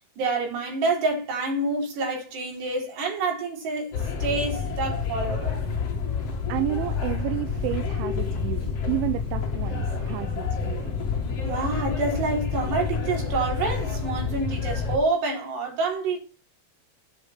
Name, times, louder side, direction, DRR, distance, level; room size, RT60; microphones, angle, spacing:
voice 1, 0.2-3.9 4.2-5.5 11.4-16.2, right 3 dB, 55° right, 6.2 m, -27 dB
sound 1, 3.9-15.0, left 5 dB, 45° left, 2.1 m, -28 dB
voice 2, 6.5-10.9, right 15 dB, 80° right, 3.0 m, -31 dB
10.0 x 7.7 x 5.8 m
omnidirectional pair, 5.8 m